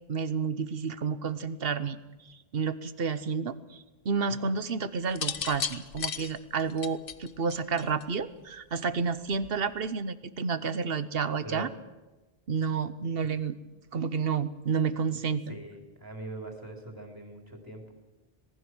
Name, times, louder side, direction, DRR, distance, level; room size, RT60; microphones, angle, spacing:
voice 1, 0.1-2.0 2.3-11.7 12.5-13.6 13.9-15.5, right 5 dB, 65° right, 14 dB, 1.2 m, -30 dB
sound 1, 5.1-8.2 9.3-9.7, left 7 dB, 60° left, 1.1 m, -35 dB
voice 2, 15.5-17.9, right 1 dB, 20° right, 2 dB, 3.7 m, -42 dB
26.0 x 19.0 x 6.3 m, 1.1 s
omnidirectional pair, 1.1 m